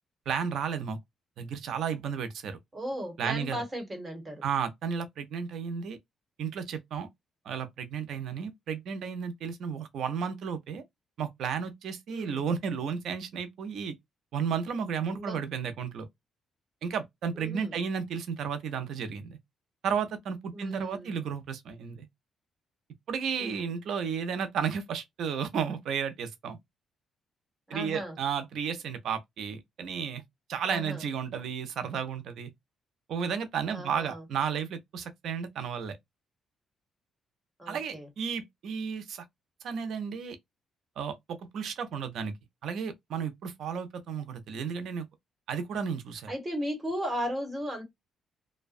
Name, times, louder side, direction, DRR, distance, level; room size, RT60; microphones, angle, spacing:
voice 1, 0.3-1.0 1.4-2.6 3.2-3.6 4.4-6.0 6.4-7.1 7.4-10.8 11.2-13.9 14.3-16.1 16.8-19.4 19.8-22.1 23.1-26.6 27.7-30.2 30.5-32.5 33.1-36.0 37.7-39.2 39.6-40.4 41.0-42.3 42.6-45.1 45.5-46.3, right 7 dB, 70° right, 0.5 m, -33 dB
voice 2, 2.7-4.4 12.1-12.4 15.1-15.4 17.4-17.8 20.5-21.1 23.4-23.7 27.7-28.1 30.7-31.0 33.7-34.2 37.6-38.1 46.3-47.8, equal, 25° right, 1.3 m, -36 dB
2.6 x 2.1 x 2.5 m
cardioid pair, 90°, 0 cm